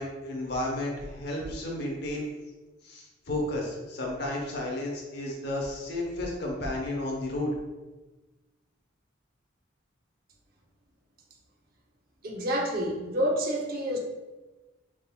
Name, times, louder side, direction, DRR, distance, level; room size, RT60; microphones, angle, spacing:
voice 1, 0.0-2.3 2.8-7.5, left 1 dB, 55° left, -1 dB, 0.9 m, -32 dB
voice 2, 12.2-14.0, equal, 50° right, 0 dB, 0.7 m, -28 dB
5.2 x 3.5 x 2.2 m, 1.2 s
head